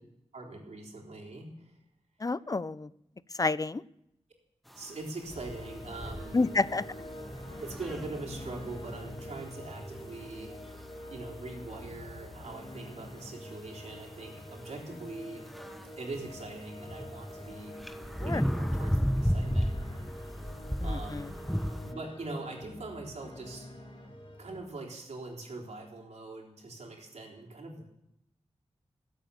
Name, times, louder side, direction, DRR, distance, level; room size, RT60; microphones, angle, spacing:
voice 1, 0.3-1.8 4.7-6.5 7.6-10.6 11.1-15.5 16.0-17.8 18.2-19.7 20.8-21.5 21.8-23.7 24.4-27.8, right 3 dB, 80° right, -1 dB, 3.8 m, -42 dB
voice 2, 2.2-2.9 3.4-3.8 6.3-6.8 18.2-18.4 20.8-21.3, left 3 dB, 30° left, 18 dB, 0.5 m, -29 dB
sound 1, 4.7-21.9, equal, ahead, 1.1 m, -36 dB
sound 2, 5.3-24.6, left 1 dB, 50° left, 5.3 m, -46 dB
21.0 x 8.3 x 7.1 m, 0.82 s
cardioid pair, 50°, 11 cm